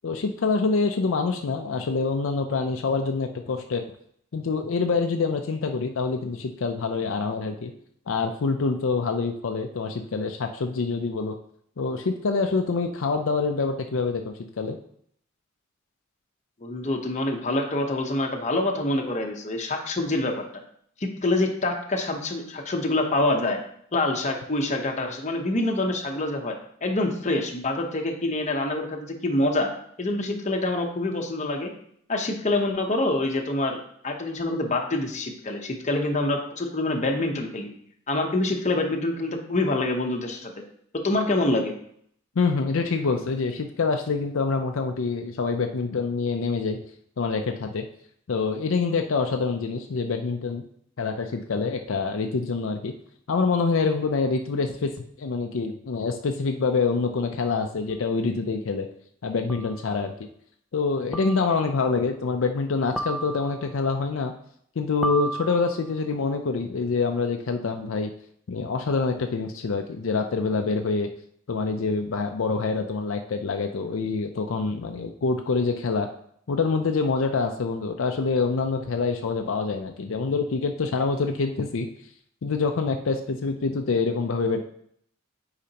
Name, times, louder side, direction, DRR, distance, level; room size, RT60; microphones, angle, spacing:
voice 1, 0.0-3.8 4.3-7.7 8.1-11.4 11.8-14.8 42.4-46.8 47.2-47.9 48.3-50.6 51.0-52.9 53.3-58.9 59.2-60.1 60.7-64.3 64.8-68.1 68.5-71.1 71.5-76.1 76.5-81.9 82.4-84.6, left 4 dB, 75° left, 4 dB, 0.5 m, -26 dB
voice 2, 16.6-20.4 21.0-23.6 23.9-29.7 30.0-31.7 32.1-37.7 38.1-40.5 40.9-41.7, left 2 dB, 35° left, 3 dB, 0.9 m, -26 dB
sound 1, 57.9-58.0 59.5-59.9 61.1-61.7 63.0-63.7 65.0-66.0, right 1 dB, ahead, 0.5 m, -33 dB
8.3 x 4.9 x 2.9 m, 0.66 s
head